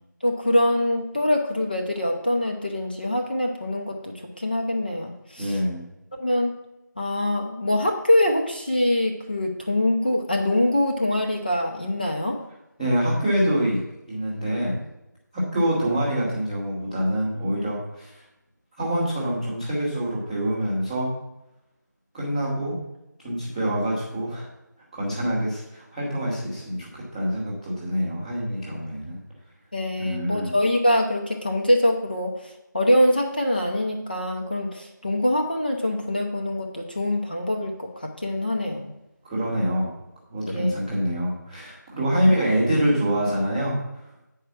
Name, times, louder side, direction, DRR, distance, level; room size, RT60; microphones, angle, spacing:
voice 1, 0.2-5.6 6.2-6.5 7.0-12.4 29.7-38.9 40.4-40.7, left 1 dB, 30° left, 1 dB, 0.7 m, -24 dB
voice 2, 5.4-5.8 12.8-13.8 14.1-14.8 15.3-18.1 18.8-21.2 22.1-22.8 23.2-24.5 24.9-29.2 30.0-30.5 39.2-39.9 40.3-43.8, equal, ahead, -21 dB, 0.8 m, -25 dB
8.9 x 4.7 x 6.1 m, 0.90 s
figure-of-eight pair, 170°, 10 cm